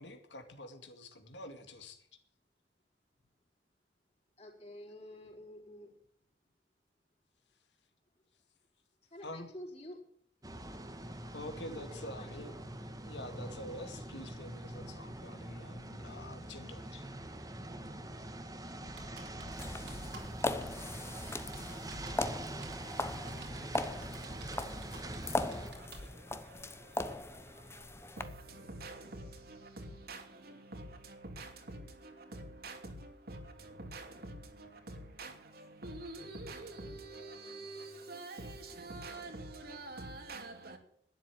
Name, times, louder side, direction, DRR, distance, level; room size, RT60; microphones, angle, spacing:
voice 1, 0.0-2.0 9.2-9.5 11.3-12.6 13.0-17.1, left 1 dB, 90° left, 2.3 m, -46 dB
voice 2, 4.4-6.0 9.0-10.0 11.9-12.5, left 1 dB, 35° left, 4.3 m, -49 dB
sound 1, 10.4-25.7, right 1 dB, 20° right, 1.6 m, -44 dB
Computer keyboard, 18.8-26.1, right 1 dB, 80° right, 3.7 m, -51 dB
sound 2, 19.5-28.2, left 2 dB, 15° left, 0.9 m, -39 dB
voice 3, 22.0-40.8, right 2 dB, 60° right, 2.6 m, -48 dB
12.0 x 10.5 x 7.8 m
head